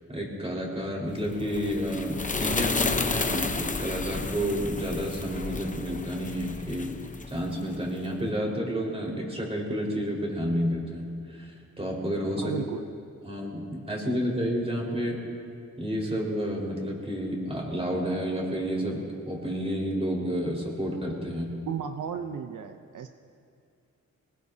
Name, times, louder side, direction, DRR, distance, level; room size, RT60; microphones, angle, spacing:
voice 1, 0.1-7.0 7.3-12.5 13.2-15.2 15.8-21.6, equal, 20° right, -2 dB, 4.6 m, -30 dB
sound 1, 1.2-7.9, left 3 dB, 25° left, 0.8 m, -32 dB
voice 2, 12.4-12.8 21.7-23.1, right 6 dB, 80° right, 7 dB, 0.7 m, -34 dB
22.5 x 20.0 x 2.8 m, 2.4 s
cardioid pair, 75°, 30 cm